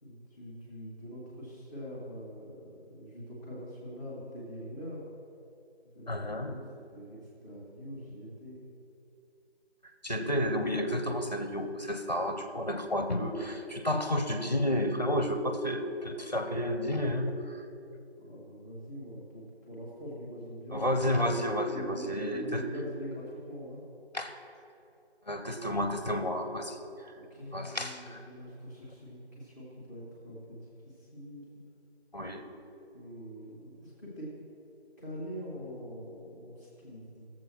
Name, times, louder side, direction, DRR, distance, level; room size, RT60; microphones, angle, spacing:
voice 1, 0.0-5.0 5.9-6.1 6.4-6.6 6.9-8.6 18.2-21.1 21.7-23.8 27.3-30.6 30.8-31.5 32.9-34.3 35.0-37.3, equal, 15° right, -6 dB, 1.4 m, -44 dB
voice 2, 6.1-6.5 10.0-17.6 20.7-22.6 24.1-24.3 25.3-26.8 27.5-28.2 32.1-32.4, equal, 40° left, 7 dB, 0.6 m, -31 dB
13.5 x 7.5 x 3.1 m, 2.7 s
figure-of-eight pair, 175°, 32 cm